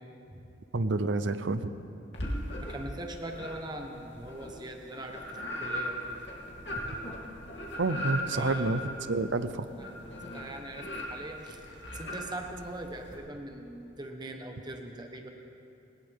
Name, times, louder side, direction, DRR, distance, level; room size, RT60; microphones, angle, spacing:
voice 1, 0.7-1.7 7.8-9.7, right 3 dB, 80° right, 12 dB, 0.7 m, -29 dB
sound 1, 2.1-3.0 3.3-13.2, equal, 70° left, 2.9 m, -38 dB
voice 2, 2.6-6.2 8.3-8.8 9.3-9.5 9.8-10.0 10.3-11.6 11.9-15.3, right 1 dB, 25° right, 3 dB, 1.3 m, -41 dB
20.0 x 19.0 x 3.7 m, 2.7 s
head